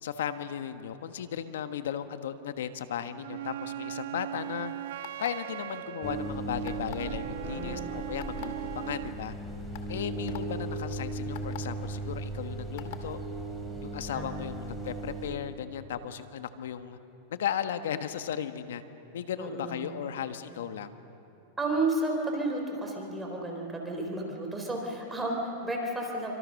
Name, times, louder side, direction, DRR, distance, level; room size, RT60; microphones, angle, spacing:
voice 1, 0.0-4.7 5.2-9.3 9.9-13.2 13.8-17.0 17.3-18.8 19.1-20.9, left 9 dB, 80° left, 10 dB, 1.4 m, -36 dB
Wind instrument woodwind instrument, 3.2-9.2, right 13 dB, 75° right, 0.8 m, -40 dB
sound 1, 5.0-5.5 6.6-7.1 8.2-8.5 9.2-9.3 9.7-9.9 10.3-10.4 11.3-11.6 12.8-13.0, left 17 dB, 60° left, 2.3 m, -42 dB
sound 2, 6.0-15.4, right 2 dB, 5° left, 3.9 m, -37 dB
voice 2, 7.2-8.0 14.1-14.6 19.4-19.9 21.6-26.3, right 2 dB, 10° right, 0 dB, 4.0 m, -32 dB
26.5 x 25.0 x 6.5 m, 2.9 s
supercardioid pair, 130°, 0 cm